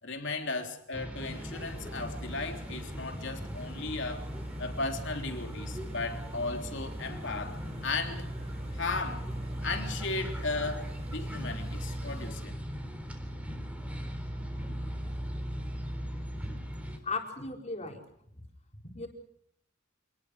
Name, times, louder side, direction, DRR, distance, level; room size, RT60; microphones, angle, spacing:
voice 1, 0.0-4.3 4.6-8.3 8.7-9.3 9.6-12.6, left 3 dB, 60° left, 5 dB, 3.5 m, -36 dB
sound 1, 0.9-17.0, equal, 5° right, 3.7 m, -38 dB
sound 2, 1.2-12.3, right 1 dB, 30° right, 3.1 m, -48 dB
voice 2, 17.0-18.0 18.9-19.1, left 3 dB, 35° left, 3 dB, 4.3 m, -36 dB
27.0 x 20.0 x 6.4 m, 0.73 s
head